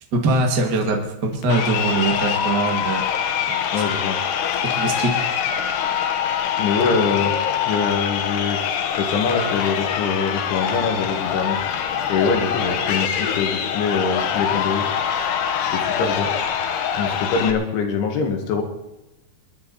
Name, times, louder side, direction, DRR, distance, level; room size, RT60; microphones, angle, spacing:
voice 1, 0.1-3.1 3.5-3.6 4.8-5.1, right 2 dB, 60° right, 2 dB, 1.0 m, -22 dB
Crowd, 1.4-17.5, left 8 dB, 70° left, 3.1 m, -24 dB
voice 2, 3.7-4.2 6.6-7.3 7.7-8.6 9.0-11.6 12.1-14.9 15.7-16.3 17.0-18.6, left 5 dB, 90° left, 3 dB, 4.4 m, -23 dB
23.0 x 10.5 x 4.2 m, 0.94 s
omnidirectional pair, 5.3 m